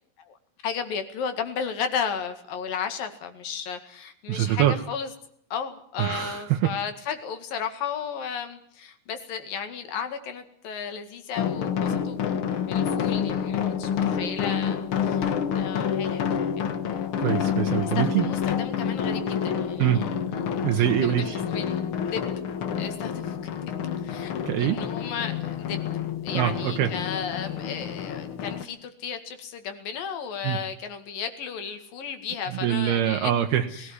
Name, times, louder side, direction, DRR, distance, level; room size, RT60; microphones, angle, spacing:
voice 1, 0.6-5.1 5.5-12.2 12.7-15.3 15.6-16.5 17.8-20.1 20.7-21.8 22.1-22.2 22.8-23.4 24.0-25.8 26.2-33.3 33.7-33.9, left 7 dB, 65° left, 8 dB, 3.6 m, -34 dB
voice 2, 4.3-4.8 6.0-6.7 17.2-18.3 19.8-20.1 20.6-21.4 24.5-24.8 26.3-26.9 30.4-30.6 32.5-33.7, right 11 dB, 80° right, 4 dB, 3.0 m, -24 dB
sound 1, 11.4-28.6, left 8 dB, 85° left, 1.1 m, -28 dB
21.5 x 17.5 x 9.7 m, 0.65 s
omnidirectional pair, 4.5 m